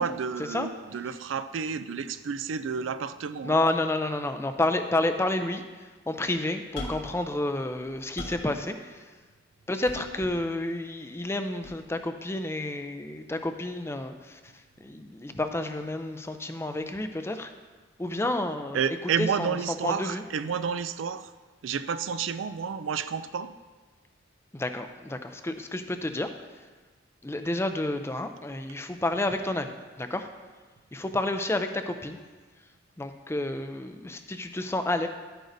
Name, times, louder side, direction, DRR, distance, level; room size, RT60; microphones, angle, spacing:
voice 1, 0.0-3.6 18.7-21.3 21.6-23.5, right 6 dB, 80° right, 12 dB, 0.4 m, -30 dB
voice 2, 3.4-9.1 9.7-14.5 14.8-17.5 18.0-19.6 19.8-20.2 24.5-26.3 27.2-30.3 30.9-32.2 33.0-35.1, left 2 dB, 15° left, 7 dB, 0.4 m, -30 dB
sound 1, 6.8-7.2 7.7-8.5 9.9-10.4 11.6-11.8, left 1 dB, 70° left, 1.4 m, -39 dB
11.5 x 9.0 x 2.6 m, 1.3 s
head